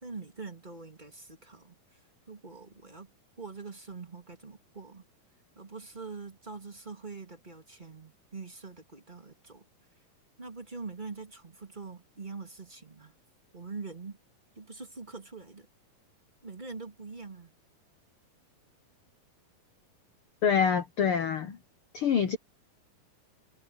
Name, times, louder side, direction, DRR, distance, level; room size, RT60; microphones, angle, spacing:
voice 1, 0.0-2.0 2.3-3.1 3.4-5.0 5.6-9.6 10.4-13.1 13.5-14.2 14.6-15.7 16.4-17.5, right 4 dB, 15° right, 2.2 m, -44 dB
voice 2, 20.4-21.6 21.9-22.4, left 7 dB, 75° left, 1.2 m, -26 dB
omnidirectional pair, 4.0 m